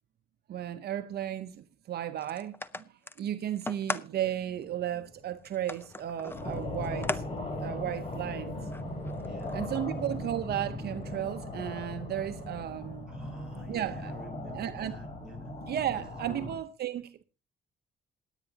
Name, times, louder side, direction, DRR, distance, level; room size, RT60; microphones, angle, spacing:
voice 1, 0.5-2.8 3.2-7.2 7.6-8.6 9.5-13.2 13.7-14.1 14.5-15.0 15.7-17.2, right 11 dB, 65° right, 0.8 m, -34 dB
sound 1, 2.2-4.1 4.6-4.7 5.5-7.2 7.6-7.7 8.7-9.8, left 2 dB, 10° left, 0.6 m, -38 dB
sound 2, 4.2-12.6, left 3 dB, 70° left, 3.2 m, -48 dB
sound 3, 6.3-16.6, left 1 dB, 35° left, 3.6 m, -38 dB
voice 2, 8.2-8.7 9.2-9.9 13.1-15.5 15.9-16.5, right 2 dB, 5° right, 7.6 m, -49 dB
27.0 x 9.1 x 2.8 m
cardioid pair, 125°, 18 cm